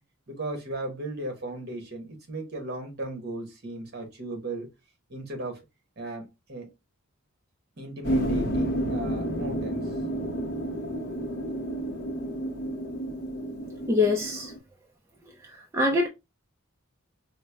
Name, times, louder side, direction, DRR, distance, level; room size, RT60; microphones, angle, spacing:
voice 1, 0.3-4.7 5.1-5.6 6.0-6.7 7.8-9.8, right 2 dB, 50° right, 1.1 m, -36 dB
sound 1, 8.0-14.6, right 1 dB, 50° left, 0.7 m, -30 dB
voice 2, 13.9-14.5 15.7-16.1, left 3 dB, 10° right, 0.4 m, -23 dB
4.3 x 2.0 x 3.3 m
head